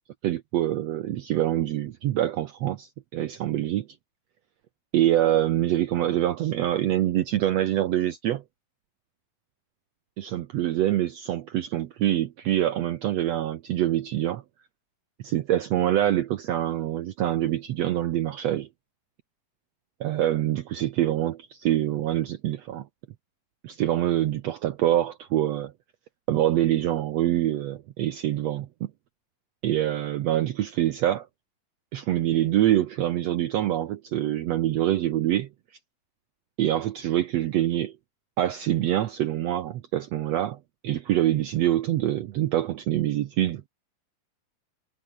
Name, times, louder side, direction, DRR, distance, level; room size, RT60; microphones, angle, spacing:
voice 1, 0.2-3.9 4.9-8.4 10.2-14.4 15.2-18.7 20.0-22.9 23.6-25.7 26.3-28.9 29.6-31.3 31.9-35.5 36.6-37.9 38.4-40.6 40.8-43.6, right 12 dB, 85° right, 1.4 m, -25 dB
omnidirectional pair, 4.2 m